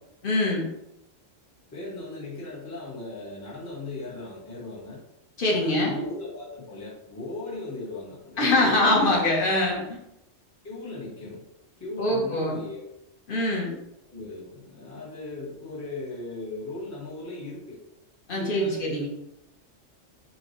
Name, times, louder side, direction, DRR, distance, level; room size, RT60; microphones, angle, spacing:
voice 1, 0.2-0.7 5.4-6.0 8.4-10.0 12.0-12.6 13.3-13.8 18.3-19.1, left 1 dB, 45° left, -2 dB, 1.1 m, -23 dB
voice 2, 1.7-5.0 5.5-8.7 10.6-11.5 11.8-12.8 14.1-17.8 18.3-19.1, left 2 dB, 15° left, -7 dB, 0.8 m, -38 dB
5.5 x 2.2 x 3.0 m, 0.85 s
omnidirectional pair, 1.3 m